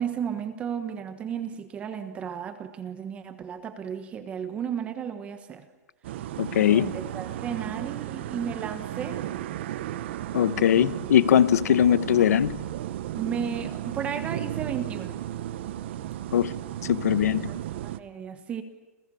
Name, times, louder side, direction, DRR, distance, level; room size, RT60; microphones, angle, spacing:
voice 1, 0.0-5.7 6.6-9.2 13.2-15.2 17.4-18.6, right 8 dB, 15° right, 1.3 m, -34 dB
sound 1, 6.0-18.0, right 12 dB, 45° right, 1.0 m, -34 dB
voice 2, 6.4-6.9 10.3-12.6 16.3-17.5, left 9 dB, 75° left, 1.1 m, -21 dB
29.0 x 28.5 x 7.1 m
supercardioid pair, 170°, 8 cm